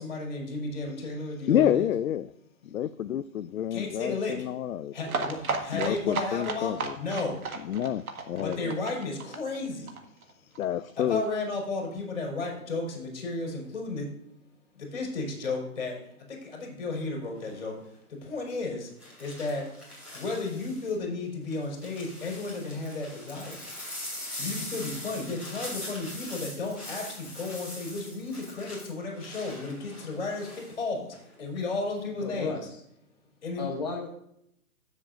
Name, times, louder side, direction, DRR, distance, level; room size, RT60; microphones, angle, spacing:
voice 1, 0.0-1.9 3.7-4.4 4.9-7.4 8.4-9.9 11.0-14.1 14.7-17.8 18.1-18.9 19.2-19.7 20.1-23.6 24.4-32.7 33.4-33.7, left 3 dB, 50° left, -1 dB, 4.4 m, -33 dB
voice 2, 1.5-2.3 2.6-5.3 5.7-7.0 7.6-8.7 10.6-11.2, left 10 dB, 65° left, 13 dB, 0.5 m, -29 dB
sound 1, 5.1-10.6 10.9-11.0 11.2-11.3 11.6-11.7, right 4 dB, 75° right, 1.7 m, -34 dB
sound 2, 17.4-17.7 19.0-20.9 21.5-30.7 31.1-31.6, left 1 dB, 5° right, 2.9 m, -42 dB
voice 3, 32.2-32.8 33.6-34.1, left 4 dB, 30° left, -2 dB, 0.9 m, -34 dB
15.0 x 7.3 x 2.6 m, 0.74 s
hypercardioid pair, 175°, 44 cm